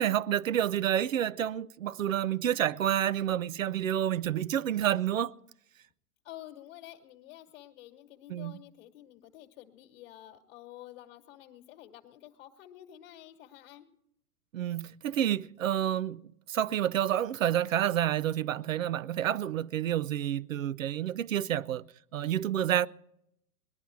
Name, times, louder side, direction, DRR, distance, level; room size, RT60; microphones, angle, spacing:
voice 1, 0.0-5.3 8.3-8.5 14.5-16.2 16.5-21.8 22.1-22.9, right 11 dB, 60° right, 0.6 m, -29 dB
voice 2, 6.2-13.9, left 13 dB, 40° left, 1.5 m, -50 dB
20.5 x 11.0 x 4.6 m
figure-of-eight pair, 110°, 45 cm